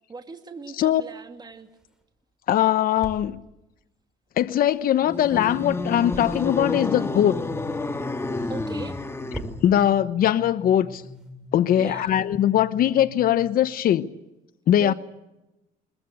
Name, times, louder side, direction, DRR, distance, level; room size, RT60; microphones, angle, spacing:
voice 1, 0.1-1.7 8.5-9.0 11.8-12.2 14.8-14.9, right 4 dB, 25° right, 2.4 m, -39 dB
sound 1, 0.8-12.0, right 1 dB, 5° right, 4.8 m, -46 dB
voice 2, 2.5-3.4 4.4-7.4 9.6-11.0 11.5-14.1 14.7-14.9, left 11 dB, 60° left, 1.0 m, -21 dB
sound 2, 5.0-9.7, left 2 dB, 15° left, 1.6 m, -30 dB
sound 3, 6.1-13.6, left 2 dB, 80° left, 4.7 m, -44 dB
22.5 x 21.0 x 8.3 m
cardioid pair, 110°, 17 cm